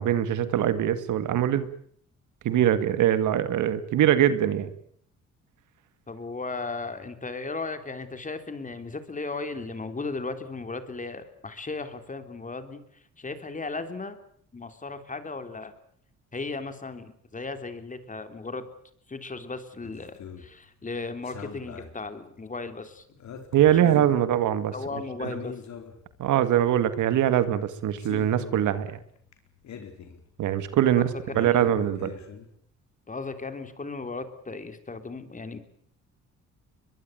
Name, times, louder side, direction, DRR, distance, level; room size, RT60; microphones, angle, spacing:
voice 1, 0.0-1.7 2.4-4.7 23.5-24.7 25.2-25.3 26.2-29.0 30.4-31.1 31.4-32.1, right 11 dB, 80° right, 12 dB, 2.1 m, -22 dB
voice 2, 6.1-12.8 13.2-14.2 14.5-15.7 16.3-18.7 19.1-23.1 23.8-24.1 24.7-25.6 31.0-31.6 33.1-35.6, left 3 dB, 25° left, 9 dB, 3.4 m, -36 dB
sound 1, 19.8-32.5, left 6 dB, 65° left, 4.6 m, -44 dB
23.0 x 22.5 x 9.2 m, 0.63 s
cardioid pair, 90°, 30 cm